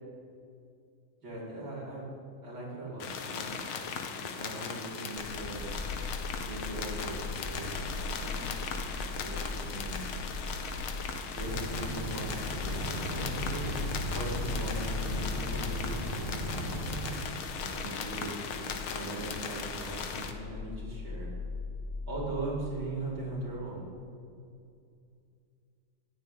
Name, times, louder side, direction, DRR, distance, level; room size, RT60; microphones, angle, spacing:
voice 1, 1.2-2.1 2.4-3.5 4.2-5.7 6.4-8.5 9.2-10.0 11.3-13.7 14.1-16.8 17.6-18.4 18.9-21.3 22.1-23.9, right 2 dB, 65° right, -6 dB, 6.0 m, -40 dB
sound 1, 3.0-20.3, left 6 dB, 85° left, 2.1 m, -38 dB
sound 2, 5.2-23.5, left 3 dB, 15° left, 4.3 m, -40 dB
sound 3, 11.4-17.2, right 1 dB, 85° right, 3.7 m, -37 dB
14.5 x 10.5 x 9.8 m, 2.4 s
omnidirectional pair, 2.3 m